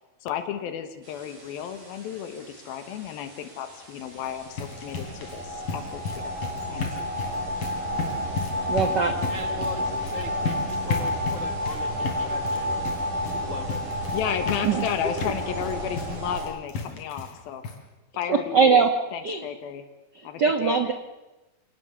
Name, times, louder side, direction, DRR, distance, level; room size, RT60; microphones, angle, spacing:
voice 1, 0.2-6.3 6.7-6.8 14.1-17.6 18.1-18.8 19.1-19.8 20.2-20.9, left 9 dB, 90° left, 8 dB, 3.2 m, -33 dB
sound 1, 1.0-16.4, equal, 55° right, 8.8 m, -31 dB
sound 2, 4.1-17.4 17.6-17.8 18.2-18.3 18.6-18.7, left 4 dB, 70° left, 4.8 m, -35 dB
voice 2, 8.7-9.1 14.6-14.8 18.3-18.9 19.2-19.4 20.4-20.9, right 5 dB, 90° right, 6 dB, 0.9 m, -21 dB
voice 3, 9.3-12.9 13.2-13.8 18.8-18.9, left 1 dB, 50° left, 6 dB, 0.9 m, -40 dB
27.0 x 18.5 x 7.0 m, 1.1 s
omnidirectional pair, 4.1 m